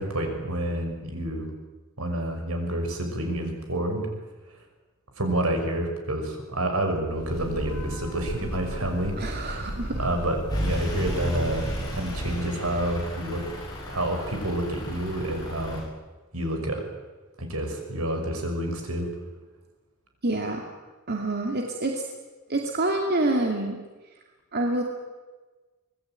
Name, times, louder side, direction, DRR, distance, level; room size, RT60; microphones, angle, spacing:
voice 1, 0.0-1.5 2.0-4.1 5.2-9.6 9.9-13.4 13.9-15.8 16.3-16.8 17.4-19.1, right 1 dB, 75° right, 4 dB, 6.0 m, -29 dB
Breathing / Train, 7.1-12.6, equal, 70° left, 6.0 m, -35 dB
voice 2, 9.2-10.0 20.2-20.7 21.1-22.0 22.5-23.8 24.5-24.8, right 2 dB, 50° right, 1 dB, 2.5 m, -27 dB
Truck / Idling, 10.5-15.8, equal, 20° left, 7.0 m, -34 dB
25.0 x 20.0 x 9.0 m, 1.3 s
head